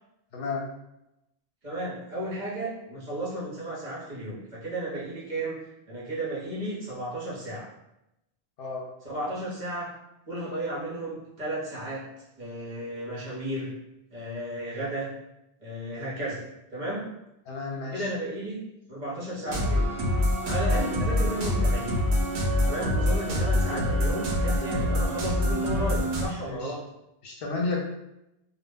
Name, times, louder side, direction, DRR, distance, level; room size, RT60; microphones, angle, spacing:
voice 1, 0.3-0.7 8.6-8.9 17.5-18.1 23.7-24.0 26.5-26.7 27.2-27.8, left 3 dB, 65° left, -1 dB, 0.8 m, -32 dB
voice 2, 1.6-7.7 9.0-9.9 10.3-12.1 12.4-13.7 14.1-15.1 15.6-16.4 16.7-17.1 17.9-18.6 18.9-19.9 20.4-22.0 22.6-26.8, right 1 dB, 50° right, -7 dB, 0.9 m, -33 dB
sound 1, 19.5-26.3, left 1 dB, 80° right, 0.8 m, -25 dB
2.2 x 2.0 x 3.4 m, 0.87 s
omnidirectional pair, 1.1 m